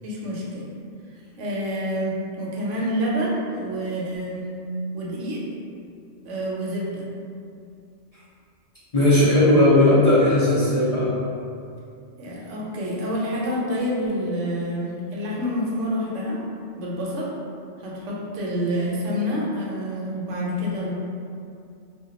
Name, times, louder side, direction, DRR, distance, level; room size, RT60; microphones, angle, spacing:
voice 1, 0.0-0.7 1.4-4.5 4.9-5.4 6.2-7.1 12.2-16.4 16.8-17.3 17.8-20.9, equal, 75° right, -4 dB, 0.9 m, -27 dB
voice 2, 8.9-11.1, left 1 dB, 40° left, -13 dB, 0.6 m, -17 dB
2.2 x 2.2 x 3.7 m, 2.5 s
omnidirectional pair, 1.3 m